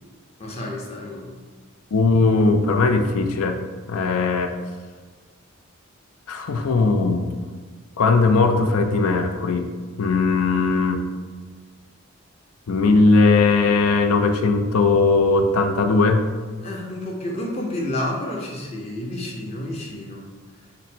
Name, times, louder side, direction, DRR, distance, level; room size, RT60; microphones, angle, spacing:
voice 1, 0.4-1.3 16.6-20.3, left 1 dB, 30° left, -1 dB, 0.7 m, -30 dB
voice 2, 1.9-3.6 3.9-4.5 6.3-7.4 8.0-9.7 10.0-11.0 12.7-16.2, left 3 dB, 80° left, 6 dB, 0.5 m, -19 dB
5.1 x 2.1 x 4.2 m, 1.5 s
head